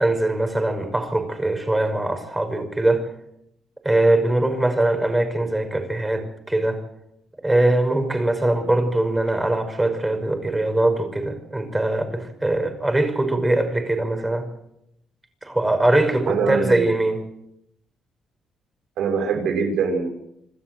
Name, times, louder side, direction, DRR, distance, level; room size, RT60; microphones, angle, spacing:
voice 1, 0.0-3.1 3.8-6.8 7.4-14.5 15.4-17.2, right 2 dB, 15° right, 7 dB, 5.6 m, -22 dB
voice 2, 16.3-16.8 19.0-20.1, right 5 dB, 80° right, 4 dB, 5.8 m, -23 dB
26.5 x 13.0 x 7.8 m, 0.77 s
cardioid pair, 90°, 0 cm